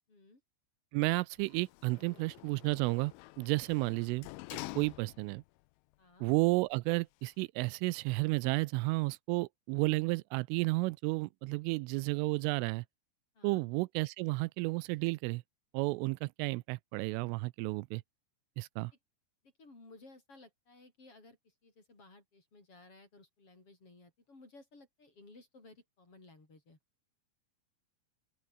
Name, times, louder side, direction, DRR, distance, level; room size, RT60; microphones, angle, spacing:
voice 1, 0.1-0.4 3.6-4.0 6.0-6.3 13.3-13.6 19.6-26.8, left 2 dB, 30° left, 7.2 m, -58 dB
voice 2, 0.9-4.3 4.8-5.4 6.2-12.8 13.4-15.4 15.7-18.0 18.6-18.9, right 24 dB, 85° right, 3.1 m, -32 dB
Sliding door, 1.4-5.5 5.9-6.0, left 21 dB, 80° left, 3.0 m, -48 dB
open air
omnidirectional pair, 5.6 m